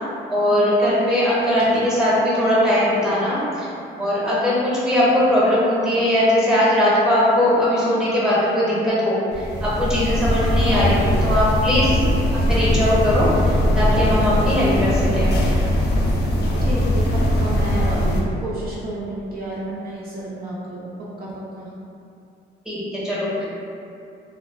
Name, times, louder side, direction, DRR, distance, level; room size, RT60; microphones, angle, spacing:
voice 1, 0.3-3.7 4.0-12.0 12.5-15.3 22.7-23.5, left 1 dB, 5° right, -8 dB, 0.8 m, -20 dB
voice 2, 1.6-2.2 4.9-5.3 10.6-11.2 16.6-18.1 18.4-20.9 21.2-21.3 21.6-21.7, right 1 dB, 50° right, -7 dB, 0.5 m, -31 dB
sound 1, 9.3-18.2, left 1 dB, 55° left, 0.4 m, -20 dB
2.4 x 2.3 x 2.3 m, 2.5 s
cardioid pair, 90°, 20 cm